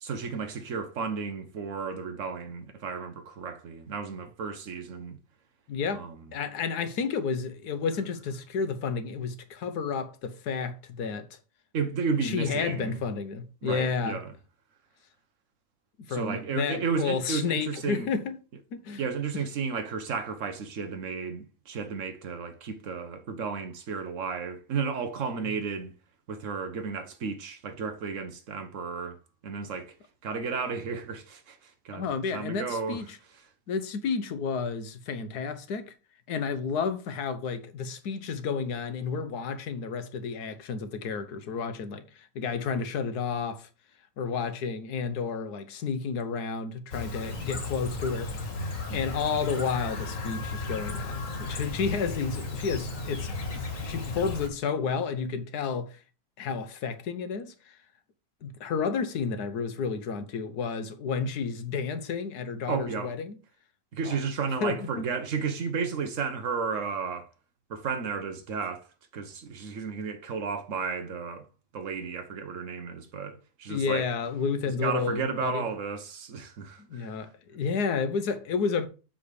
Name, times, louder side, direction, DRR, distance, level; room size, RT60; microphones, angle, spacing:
voice 1, 0.0-5.2 5.9-6.2 11.7-13.0 13.6-14.3 16.1-18.1 19.0-25.9 26.3-29.2 29.4-29.9 30.2-32.1 32.3-33.0 48.9-49.0 62.7-63.1 63.9-67.3 67.7-68.9 69.1-71.5 71.7-74.1 74.8-77.2, right 5 dB, 55° right, 1.3 m, -33 dB
voice 2, 5.7-6.1 6.3-11.3 12.2-14.2 16.0-18.4 18.7-19.0 19.3-19.4 25.4-25.5 31.9-33.2 33.7-35.9 36.3-43.7 44.2-48.5 48.9-56.0 56.4-57.8 58.4-63.3 64.0-64.2 64.6-65.0 73.7-75.7 76.9-78.9, left 5 dB, 80° left, 1.5 m, -31 dB
Chirp tweet, 46.9-54.5, left 3 dB, 55° left, 1.8 m, -35 dB
7.7 x 3.5 x 6.5 m
omnidirectional pair, 1.7 m